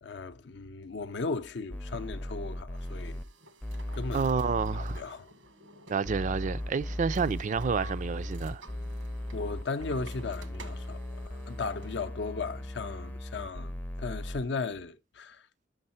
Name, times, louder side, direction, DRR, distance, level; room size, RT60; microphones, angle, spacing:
voice 1, 0.0-3.2 3.9-4.3 4.7-5.3 9.3-15.4, left 4 dB, 65° left, 0.6 m, -36 dB
sound 1, 1.7-3.2 3.6-5.0 6.0-14.4, left 1 dB, 10° left, 0.5 m, -37 dB
sound 2, 2.7-12.2, right 1 dB, 90° right, 1.3 m, -53 dB
voice 2, 4.1-5.0 5.9-8.6, right 5 dB, 40° right, 0.3 m, -29 dB
6.6 x 6.2 x 4.2 m
head